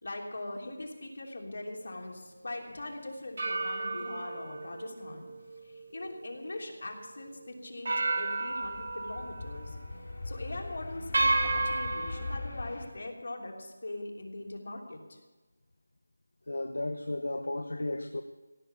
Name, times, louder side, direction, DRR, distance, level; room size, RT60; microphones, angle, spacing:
voice 1, 0.0-5.3 5.6-9.8 10.2-15.2, left 2 dB, 55° left, 1 dB, 3.2 m, -41 dB
sound 1, 1.8-2.1 3.4-6.8 7.2-7.3 7.8-9.7 10.0-10.3 11.1-12.4, right 2 dB, 40° right, 1.4 m, -33 dB
sound 2, 8.5-12.9, left 2 dB, 40° left, 2.8 m, -40 dB
voice 2, 16.5-18.2, left 2 dB, 90° left, 8 dB, 1.0 m, -34 dB
17.0 x 7.8 x 9.0 m, 1.2 s
figure-of-eight pair, 180°, 0 cm